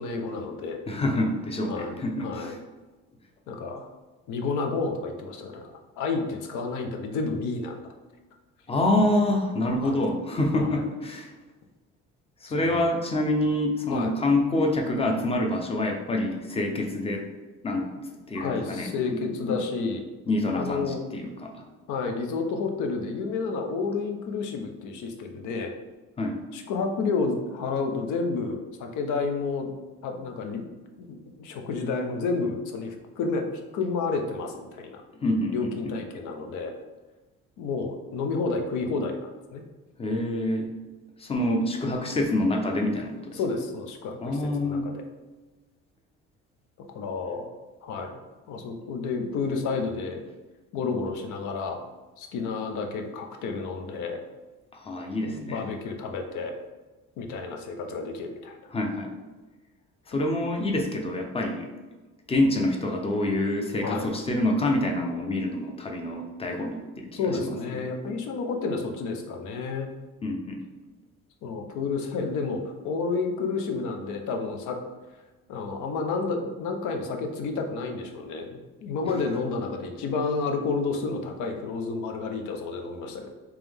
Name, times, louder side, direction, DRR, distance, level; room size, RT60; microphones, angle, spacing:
voice 1, 0.0-0.8 1.7-2.6 3.5-3.9 4.3-5.7 6.0-7.8 9.8-10.0 10.5-10.8 12.6-12.9 13.9-14.1 18.3-20.0 20.5-21.0 21.9-25.7 26.5-29.7 30.0-30.6 31.0-33.5 33.7-35.0 35.5-36.7 37.6-39.6 43.3-45.0 46.9-47.5 47.8-48.2 48.5-50.2 50.7-51.8 52.2-54.2 55.2-56.5 57.2-58.7 63.8-64.1 67.1-69.9 71.4-74.8 75.5-83.3, left 4 dB, 70° left, 4 dB, 0.7 m, -30 dB
voice 2, 0.9-2.5 8.7-11.3 12.4-17.2 17.6-17.9 18.3-19.2 19.5-19.6 20.3-21.5 26.2-26.4 35.2-35.5 40.0-40.7 41.2-43.4 44.2-44.8 54.7-55.6 58.7-59.1 60.1-61.6 62.3-67.5 70.2-70.6, left 1 dB, 20° left, 2 dB, 0.6 m, -26 dB
3.7 x 3.0 x 3.4 m, 1.2 s
cardioid pair, 110°, 31 cm